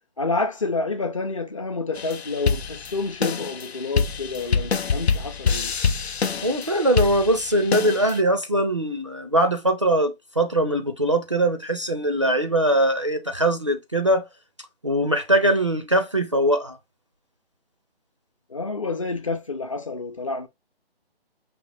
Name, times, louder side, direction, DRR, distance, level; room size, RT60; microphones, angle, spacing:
voice 1, 0.2-5.8 18.5-20.5, left 3 dB, 35° left, 0.5 m, -29 dB
sound 1, 1.9-8.2, left 5 dB, 90° left, 0.7 m, -26 dB
voice 2, 6.4-14.2 14.8-16.8, right 1 dB, 30° right, 0.4 m, -21 dB
5.3 x 2.8 x 3.2 m
hypercardioid pair, 160°, 31 cm